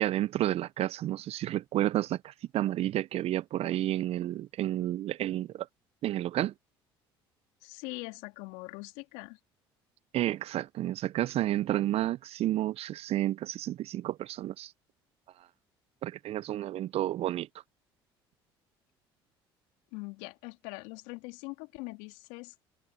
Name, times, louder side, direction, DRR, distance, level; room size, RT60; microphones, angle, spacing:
voice 1, 0.0-5.7 6.0-6.5 10.1-14.7 16.0-17.5, right 13 dB, 55° right, 0.8 m, -31 dB
voice 2, 7.6-9.4 19.9-22.5, left 27 dB, 70° left, 2.7 m, -42 dB
hypercardioid pair, 60°, 13 cm